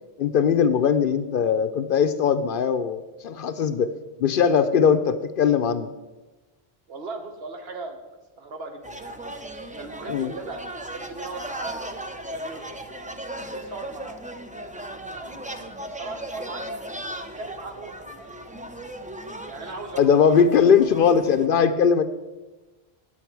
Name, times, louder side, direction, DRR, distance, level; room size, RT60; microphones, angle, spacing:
voice 1, 0.2-3.9 4.2-5.9 10.1-10.3 20.0-22.0, left 7 dB, 65° left, 11 dB, 0.7 m, -20 dB
voice 2, 6.9-8.0 8.4-9.1 9.7-11.8 12.3-12.7 13.5-14.2 15.1-16.7 17.1-18.4 19.4-20.3, right 3 dB, 75° right, 5 dB, 1.3 m, -38 dB
sound 1, 8.8-21.5, right 1 dB, 15° right, 0.3 m, -37 dB
8.9 x 8.6 x 4.6 m, 1.1 s
omnidirectional pair, 1.0 m